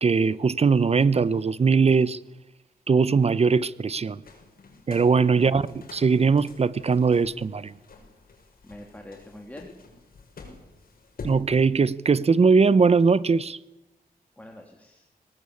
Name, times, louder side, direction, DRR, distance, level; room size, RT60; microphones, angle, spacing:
voice 1, 0.0-2.2 2.9-4.2 4.9-5.6 5.9-7.7 11.2-13.6, right 5 dB, 40° right, 0.9 m, -20 dB
sound 1, 4.2-11.4, left 3 dB, 70° left, 6.0 m, -46 dB
voice 2, 8.6-9.7 14.4-15.1, left 1 dB, 10° left, 3.1 m, -44 dB
23.0 x 19.5 x 8.6 m
wide cardioid pair, 100°, 16 cm